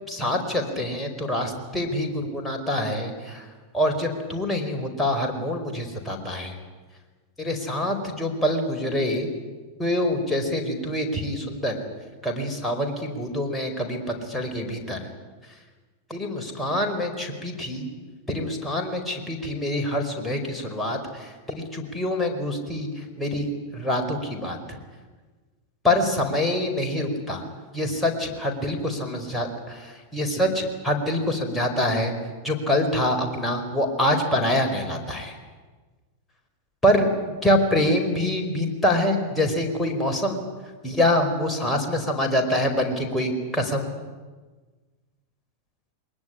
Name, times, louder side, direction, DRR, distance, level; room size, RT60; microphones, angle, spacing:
voice 1, 0.1-3.5 3.7-6.6 7.4-9.3 9.8-11.8 12.2-15.1 16.1-17.9 18.3-24.8 25.8-27.5 27.7-32.1 32.4-35.3 36.8-37.1 37.4-40.4 40.8-43.9, left 1 dB, 5° left, 2 dB, 4.7 m, -25 dB
22.0 x 20.5 x 10.0 m, 1.3 s
figure-of-eight pair, 90°, 0 cm